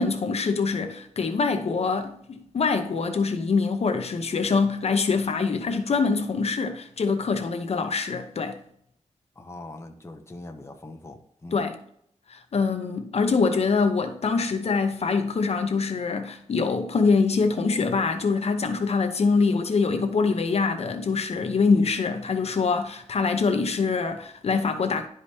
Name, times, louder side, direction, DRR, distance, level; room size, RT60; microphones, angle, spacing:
voice 1, 0.0-8.6 11.5-11.8 12.3-25.1, left 4 dB, 55° left, 0.8 m, -24 dB
voice 2, 9.4-11.6, left 2 dB, 20° left, 0.8 m, -42 dB
11.0 x 5.1 x 2.8 m
wide cardioid pair, 165°, 13 cm